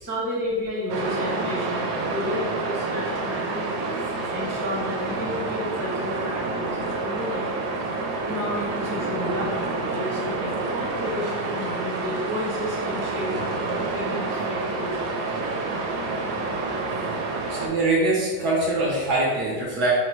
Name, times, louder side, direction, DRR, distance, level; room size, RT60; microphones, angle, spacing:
voice 1, 0.0-4.0 4.3-7.5 8.2-13.3 13.7-15.1, left 1 dB, 15° left, -7 dB, 0.7 m, -32 dB
sound 1, 0.9-17.7, right 3 dB, 80° right, 1.3 m, -28 dB
voice 2, 17.5-19.9, right 2 dB, 65° right, -4 dB, 1.2 m, -23 dB
4.8 x 2.1 x 4.5 m, 1.4 s
omnidirectional pair, 2.1 m